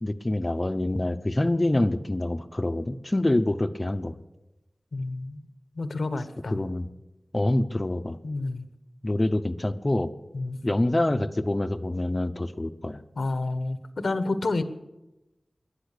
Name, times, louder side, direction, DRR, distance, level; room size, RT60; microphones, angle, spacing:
voice 1, 0.0-4.2 6.5-6.9 7.3-8.2 9.0-10.1 10.6-13.0, left 1 dB, 30° left, 10 dB, 0.8 m, -26 dB
voice 2, 4.9-5.4 5.7-6.6 8.2-8.7 10.3-10.6 13.1-14.6, left 2 dB, 80° left, 11 dB, 1.2 m, -29 dB
18.5 x 11.5 x 6.8 m, 0.99 s
wide cardioid pair, 70°, 0 cm